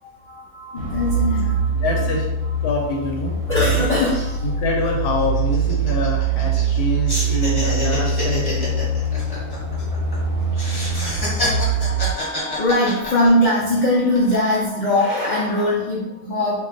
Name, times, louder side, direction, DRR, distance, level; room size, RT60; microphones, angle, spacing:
voice 1, 0.0-2.2 2.6-3.0 3.5-4.6 11.2-16.7, left 1 dB, 70° left, -6 dB, 0.4 m, -22 dB
sound 1, 0.7-12.1, right 4 dB, 65° right, 0.9 m, -23 dB
voice 2, 1.8-2.2 2.6-3.3 4.4-8.7 9.2-9.9 11.3-11.4 11.7-11.8, left 2 dB, 90° left, 0 dB, 1.1 m, -26 dB
sound 2, 4.3-4.4 4.6-4.8 5.2-6.8 7.1-10.2 10.5-13.7 14.1-14.7, left 1 dB, 20° left, 0.8 m, -28 dB
2.6 x 2.2 x 3.7 m, 0.94 s
omnidirectional pair, 1.6 m